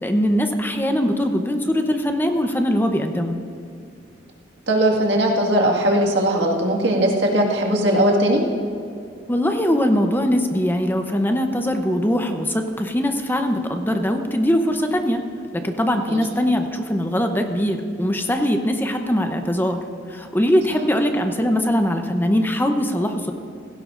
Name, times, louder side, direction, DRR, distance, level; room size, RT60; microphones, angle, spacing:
voice 1, 0.0-3.4 9.3-15.2 15.5-19.8 20.1-23.3, equal, 10° left, 6 dB, 0.7 m, -21 dB
voice 2, 4.7-8.4 16.1-16.2, right 1 dB, 75° right, 0 dB, 1.8 m, -19 dB
16.5 x 16.0 x 2.5 m, 2.5 s
head